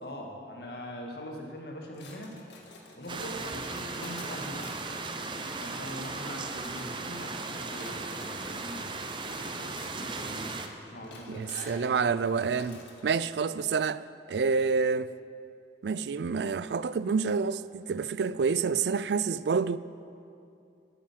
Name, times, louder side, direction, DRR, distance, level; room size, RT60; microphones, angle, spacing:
voice 1, 0.0-2.4 2.9-4.8 5.6-8.9 9.6-10.6 10.9-11.8, left 1 dB, 65° left, 2.0 m, -42 dB
sound 1, 1.9-13.1, left 2 dB, 85° left, 1.8 m, -50 dB
Light rain, 3.1-10.7, right 3 dB, 30° right, 0.7 m, -37 dB
voice 2, 11.3-15.1 15.8-19.8, right 5 dB, 75° right, 0.4 m, -28 dB
12.0 x 9.0 x 7.5 m
head